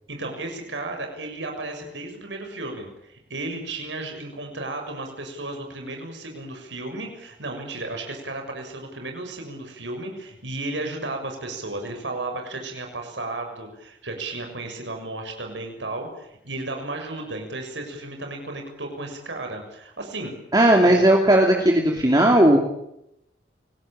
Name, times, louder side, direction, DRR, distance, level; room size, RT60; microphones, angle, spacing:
voice 1, 0.1-20.3 20.8-21.0, right 2 dB, 90° right, 3 dB, 6.8 m, -34 dB
voice 2, 20.5-22.6, right 1 dB, 20° right, 1 dB, 2.8 m, -16 dB
27.5 x 20.5 x 8.9 m, 0.80 s
head